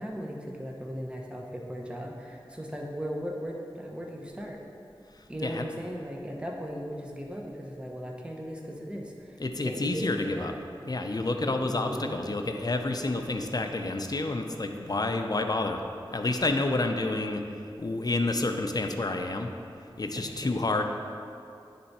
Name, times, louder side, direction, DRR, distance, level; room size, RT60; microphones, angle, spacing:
voice 1, 0.0-4.6 5.3-10.6 11.1-11.2 11.4-12.2 20.1-20.5, equal, 10° right, 0 dB, 0.9 m, -37 dB
voice 2, 9.4-10.5 10.9-15.8 16.1-17.4 17.8-19.5 20.0-20.8, left 2 dB, 45° left, 5 dB, 0.5 m, -29 dB
9.6 x 3.4 x 4.2 m, 2.5 s
wide cardioid pair, 45°, 9 cm